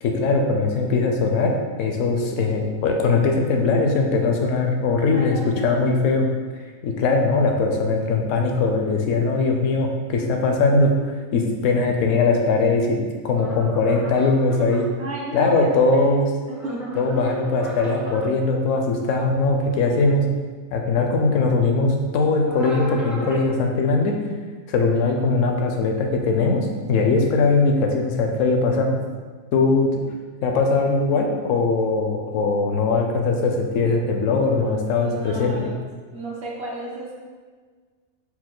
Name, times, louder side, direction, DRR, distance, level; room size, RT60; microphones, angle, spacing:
voice 1, 0.0-6.3 6.8-13.0 13.2-14.9 15.3-16.3 17.0-20.2 20.7-24.2 24.7-29.0 29.5-29.9 30.4-35.7, left 3 dB, 70° left, 2 dB, 0.9 m, -20 dB
voice 2, 5.1-5.8 15.0-16.2 16.5-17.0 24.9-25.2 35.0-35.8 36.1-37.1, right 1 dB, 60° right, -2 dB, 0.9 m, -33 dB
sound 1, 13.3-14.8 16.5-18.3 22.4-23.5, equal, ahead, 0.3 m, -38 dB
4.3 x 2.4 x 3.7 m, 1.5 s
omnidirectional pair, 1.4 m